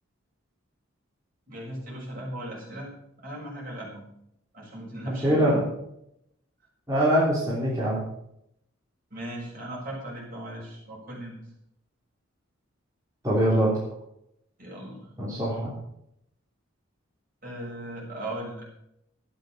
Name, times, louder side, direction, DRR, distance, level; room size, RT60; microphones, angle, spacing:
voice 1, 1.5-2.9 3.2-4.1 4.5-5.5 9.1-11.4 14.6-15.0 17.4-18.7, right 1 dB, 40° right, -4 dB, 6.8 m, -37 dB
voice 2, 5.1-5.6 6.9-8.0 13.2-13.8 15.2-15.7, right 1 dB, 15° right, -7 dB, 3.5 m, -23 dB
13.0 x 10.5 x 6.6 m, 0.78 s
head